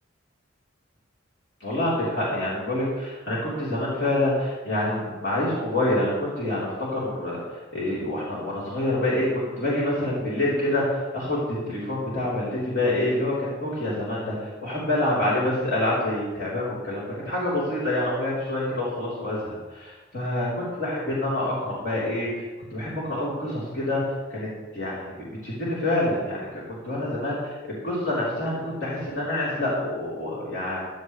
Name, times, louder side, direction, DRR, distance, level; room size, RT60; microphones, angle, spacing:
voice 1, 1.6-22.4 22.7-24.0 24.3-24.5 24.7-30.8, left 1 dB, 60° left, -9 dB, 4.0 m, -27 dB
16.0 x 9.3 x 3.3 m, 1.3 s
head